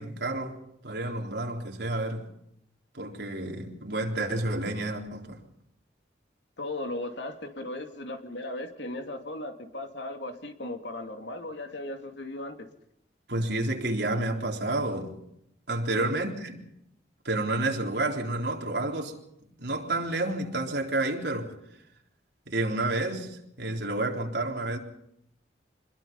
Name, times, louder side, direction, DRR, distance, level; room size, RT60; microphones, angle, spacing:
voice 1, 0.0-2.3 2.9-5.4 13.3-15.2 15.7-16.6 17.2-19.2 19.6-21.6 22.5-24.8, right 2 dB, 70° right, 3.9 m, -30 dB
voice 2, 6.6-12.7 15.9-16.1, left 2 dB, 80° left, 2.6 m, -37 dB
26.5 x 21.5 x 5.5 m
head